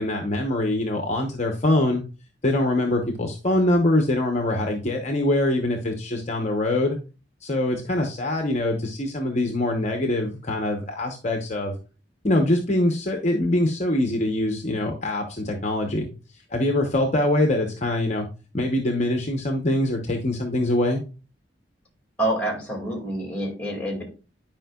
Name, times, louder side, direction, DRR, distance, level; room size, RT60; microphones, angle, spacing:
voice 1, 0.0-2.0 2.4-7.0 7.4-11.8 12.2-16.1 16.5-18.3 18.5-21.0, left 1 dB, 35° left, 3 dB, 0.9 m, -23 dB
voice 2, 22.2-24.0, right 1 dB, 5° left, 0 dB, 2.2 m, -27 dB
10.5 x 5.0 x 2.3 m, 0.33 s
head